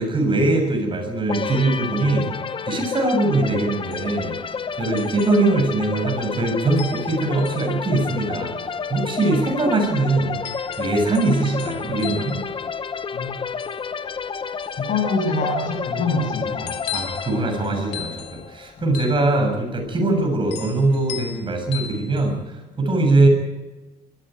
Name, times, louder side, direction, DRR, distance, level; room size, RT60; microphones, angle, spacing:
voice 1, 0.0-2.3 2.7-4.4 4.8-10.4 10.8-12.4 16.9-23.3, right 2 dB, 30° right, 3 dB, 7.1 m, -21 dB
sound 1, 1.3-18.9, left 6 dB, 30° left, 0.9 m, -30 dB
sound 2, 3.6-22.5, left 10 dB, 85° left, 2.4 m, -39 dB
voice 2, 14.9-16.8, left 3 dB, 50° left, 4 dB, 7.9 m, -24 dB
21.5 x 15.5 x 9.1 m, 1.1 s
cardioid pair, 110°, 17 cm